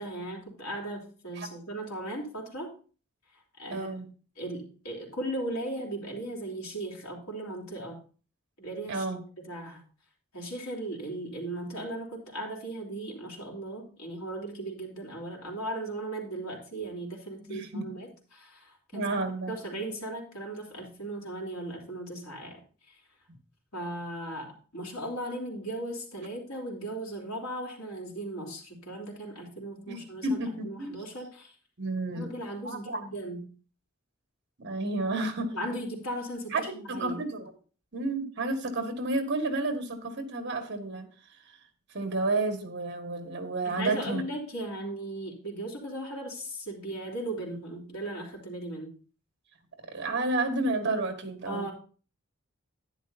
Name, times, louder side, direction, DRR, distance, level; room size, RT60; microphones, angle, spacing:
voice 1, 0.0-2.7 3.6-4.0 4.4-8.0 8.6-9.1 9.4-9.8 10.3-19.1 19.5-22.6 22.9-23.0 23.7-31.5 32.1-33.4 35.5-37.2 43.6-48.9 51.4-51.7, right 1 dB, 85° left, -1 dB, 3.2 m, -37 dB
voice 2, 3.7-4.0 8.9-9.2 17.4-17.9 18.9-19.8 29.9-30.9 31.8-32.3 32.6-33.0 34.6-35.5 36.5-37.5 37.9-41.1 41.9-44.2 49.9-51.7, right 2 dB, 55° right, 6 dB, 1.6 m, -31 dB
11.0 x 10.0 x 2.7 m, 0.38 s
head